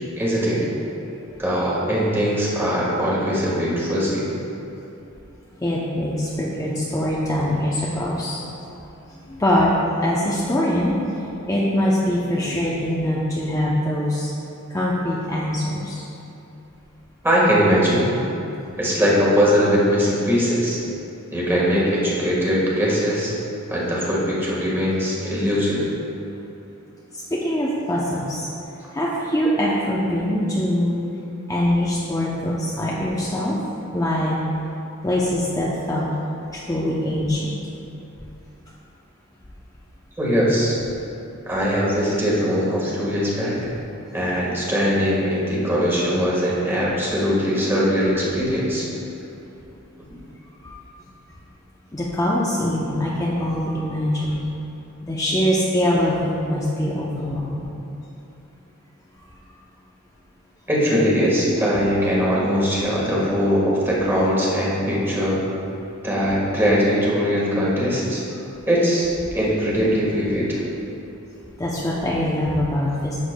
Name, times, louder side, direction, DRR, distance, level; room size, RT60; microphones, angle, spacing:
voice 1, 0.2-0.7 1.4-4.3 17.2-18.1 18.8-20.8 21.3-23.4 23.7-25.9 40.2-40.8 41.5-43.6 44.1-48.9 60.7-65.4 66.0-68.2 68.7-70.6, equal, 10° right, -6 dB, 1.5 m, -21 dB
voice 2, 5.6-8.4 9.3-9.7 10.0-11.0 11.5-14.3 14.7-16.0 27.3-28.4 28.9-31.0 31.5-33.6 33.9-34.4 35.0-36.1 36.7-37.5 50.6-50.7 51.9-54.4 55.0-57.7 71.6-73.2, left 1 dB, 15° left, -6 dB, 0.6 m, -23 dB
11.0 x 6.6 x 2.2 m, 2.8 s
head